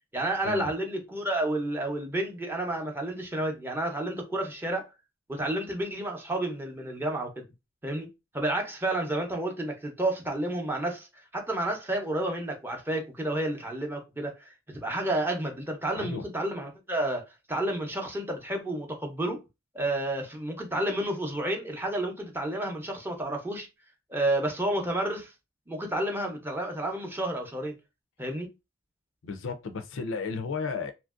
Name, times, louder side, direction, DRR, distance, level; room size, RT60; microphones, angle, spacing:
voice 1, 0.1-4.9 5.3-7.4 7.8-8.1 8.3-11.1 11.3-19.4 19.7-23.7 24.1-25.3 25.7-27.8 28.2-28.5, right 1 dB, 10° right, 0.6 m, -30 dB
voice 2, 29.2-30.9, left 4 dB, 75° left, 0.4 m, -33 dB
2.9 x 2.5 x 2.4 m
head